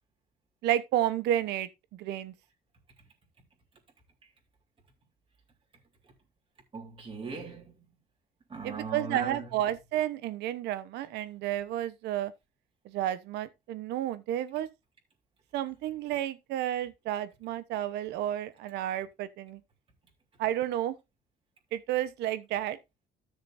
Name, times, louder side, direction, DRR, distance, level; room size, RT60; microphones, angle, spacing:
voice 1, 0.6-2.3 8.6-12.3 12.8-14.7 15.5-19.6 20.4-20.9 21.7-22.8, right 12 dB, 85° right, 1.0 m, -31 dB
voice 2, 6.7-7.8 8.5-9.5, right 4 dB, 30° right, 3.7 m, -39 dB
13.5 x 6.6 x 2.6 m
cardioid pair, 110°, 17 cm